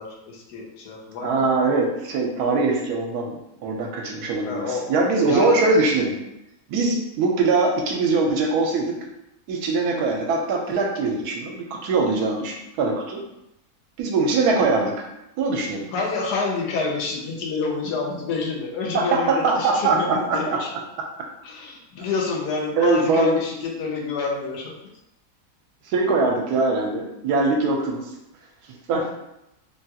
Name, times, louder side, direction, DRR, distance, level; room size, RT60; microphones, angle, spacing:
voice 1, 0.0-1.7 4.4-5.0 5.2-5.7 15.9-20.7 21.4-24.8, left 4 dB, 90° left, -1 dB, 1.2 m, -28 dB
voice 2, 1.2-6.1 6.7-8.9 9.5-13.2 14.0-15.0 15.4-15.9 18.9-20.6 22.8-23.4 25.9-28.0 28.9-29.0, right 3 dB, 80° right, 1 dB, 1.1 m, -22 dB
3.5 x 2.3 x 2.7 m, 0.87 s
omnidirectional pair, 1.7 m